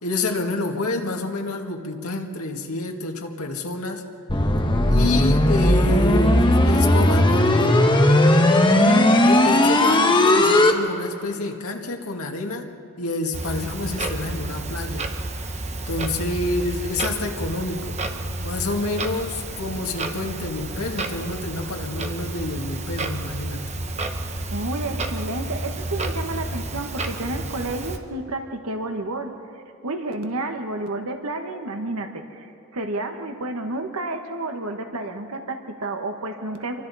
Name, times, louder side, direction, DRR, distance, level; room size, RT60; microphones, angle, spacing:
voice 1, 0.0-4.0 4.9-7.9 9.2-12.7 13.0-15.1 15.9-18.0 18.4-23.7, left 2 dB, 90° left, 2 dB, 1.9 m, -28 dB
sound 1, 4.3-10.7, left 1 dB, 20° left, 1.3 m, -17 dB
voice 2, 8.7-9.2 24.5-29.4 29.8-36.8, right 2 dB, 85° right, 5 dB, 1.5 m, -30 dB
Clock, 13.3-28.0, right 2 dB, 30° right, 1.1 m, -31 dB
28.0 x 24.0 x 4.2 m, 2.8 s
head